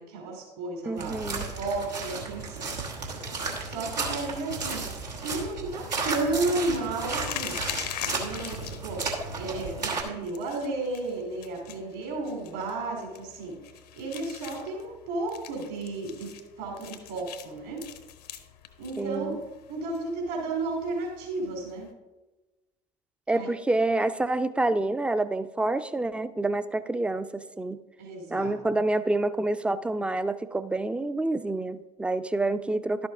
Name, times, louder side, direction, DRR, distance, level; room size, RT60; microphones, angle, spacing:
voice 1, 0.0-2.7 3.6-4.8 5.2-7.6 8.0-9.1 9.4-13.6 14.0-16.3 16.6-17.8 18.8-19.4 19.7-21.9 23.3-23.5 28.0-28.5, right 2 dB, 65° right, 0 dB, 3.0 m, -33 dB
voice 2, 0.9-1.5 19.0-19.4 23.3-27.8 28.3-33.1, right 2 dB, 5° right, 13 dB, 0.4 m, -27 dB
sound 1, 1.0-10.0, right 4 dB, 90° right, 1.4 m, -34 dB
sound 2, 3.4-21.9, left 10 dB, 75° left, 0.8 m, -44 dB
11.5 x 6.9 x 3.5 m, 1.1 s
hypercardioid pair, 65°, 21 cm